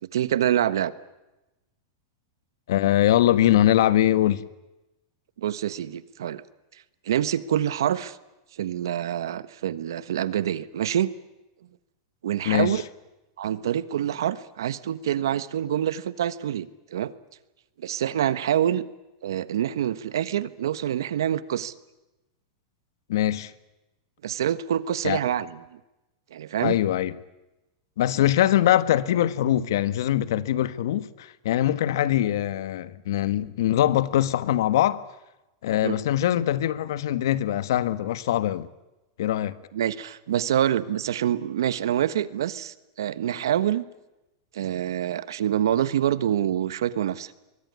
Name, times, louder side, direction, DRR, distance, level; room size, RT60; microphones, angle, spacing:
voice 1, 0.1-0.9 5.4-6.4 7.0-8.2 8.6-11.1 12.2-12.8 13.4-17.1 17.8-18.8 19.2-21.7 24.2-25.8 26.3-26.8 35.8-36.0 39.7-43.8 44.5-47.3, right 10 dB, 90° right, 1.3 m, -26 dB
voice 2, 2.7-4.4 12.4-12.8 23.1-23.5 25.0-25.2 26.6-27.1 28.0-35.0 35.6-38.7 39.2-39.5, left 12 dB, 70° left, 1.4 m, -22 dB
24.0 x 22.5 x 9.6 m
supercardioid pair, 155°, 2 cm